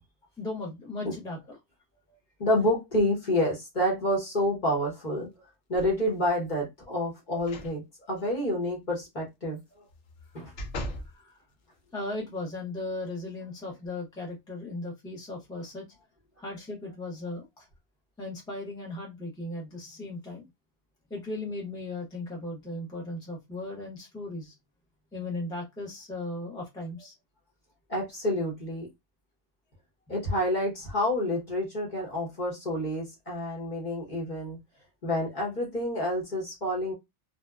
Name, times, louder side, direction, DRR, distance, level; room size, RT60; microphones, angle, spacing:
voice 1, 0.4-1.6 11.1-11.4 11.9-15.9 16.4-17.7 18.2-20.5 21.1-24.5 25.1-27.1, left 2 dB, 5° left, 0.5 m, -37 dB
voice 2, 2.4-5.4 5.7-9.6 10.3-10.5 27.9-28.9 30.1-34.6 35.0-36.9, left 1 dB, 40° left, 0.9 m, -28 dB
sound 1, 5.7-6.3 7.4-7.7 8.2-8.3 9.9-11.1 11.7-11.8, left 1 dB, 65° left, 0.9 m, -39 dB
2.7 x 2.1 x 2.2 m
omnidirectional pair, 1.4 m